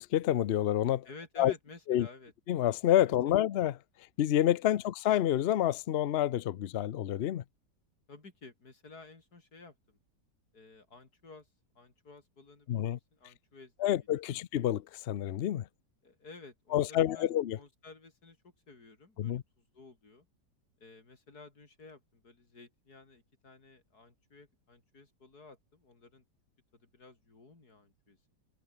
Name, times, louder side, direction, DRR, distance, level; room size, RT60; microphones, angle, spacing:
voice 1, 0.0-1.1 1.4-1.5 1.9-2.1 2.5-3.7 4.2-7.4 12.7-13.0 13.8-15.7 16.7-17.6 19.2-19.4, left 12 dB, 80° left, 0.5 m, -28 dB
voice 2, 1.0-2.3 3.3-3.4 4.7-4.9 8.1-10.0 10.5-11.5 11.8-14.4 16.0-20.3 20.8-26.2 26.7-28.2, left 3 dB, 60° left, 4.5 m, -54 dB
omnidirectional pair, 1.9 m